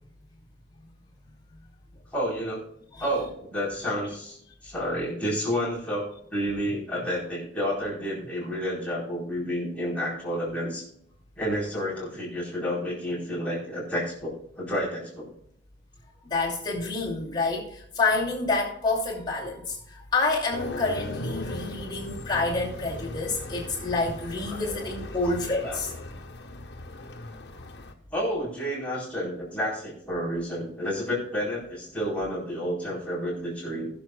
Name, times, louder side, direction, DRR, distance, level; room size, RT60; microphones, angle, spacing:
voice 1, 2.1-2.6 3.0-10.8 11.4-15.3 24.4-24.8 25.2-25.3 25.6-25.8 28.1-33.9, equal, 10° left, -8 dB, 4.3 m, -30 dB
voice 2, 16.2-25.9, left 3 dB, 25° left, -4 dB, 2.7 m, -28 dB
sound 1, 20.5-27.9, left 1 dB, 65° left, 1.2 m, -38 dB
21.0 x 7.1 x 2.4 m, 0.70 s
head